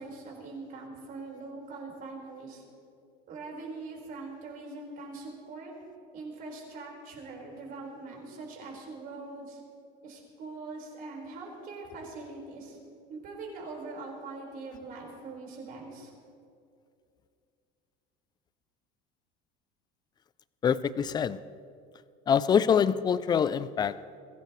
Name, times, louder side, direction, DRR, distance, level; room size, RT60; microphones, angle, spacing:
voice 1, 0.0-2.6 3.3-5.7 6.1-9.6 10.0-12.8 13.1-16.1, right 3 dB, 45° right, -2 dB, 4.9 m, -42 dB
voice 2, 20.6-21.4 22.3-24.0, left 7 dB, 20° left, 16 dB, 0.4 m, -25 dB
22.5 x 17.0 x 3.2 m, 2.4 s
cardioid pair, 145°, 20 cm